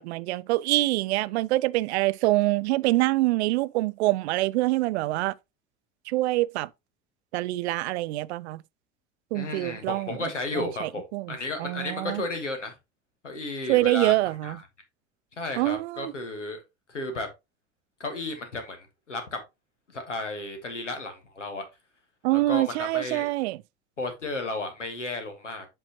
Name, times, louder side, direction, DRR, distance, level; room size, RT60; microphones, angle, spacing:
voice 1, 0.0-5.3 6.1-6.7 7.3-8.6 9.3-10.3 10.5-11.3 11.6-12.2 13.7-14.6 15.6-16.1 22.2-23.6, right 18 dB, 65° right, 0.5 m, -25 dB
voice 2, 9.3-11.0 11.3-12.8 13.2-14.1 14.4-14.6 15.4-16.6 16.9-17.3 18.0-19.4 19.9-21.6 22.3-23.3 24.0-25.7, left 2 dB, 90° left, 1.4 m, -33 dB
7.7 x 5.4 x 2.9 m
figure-of-eight pair, 65°, 35 cm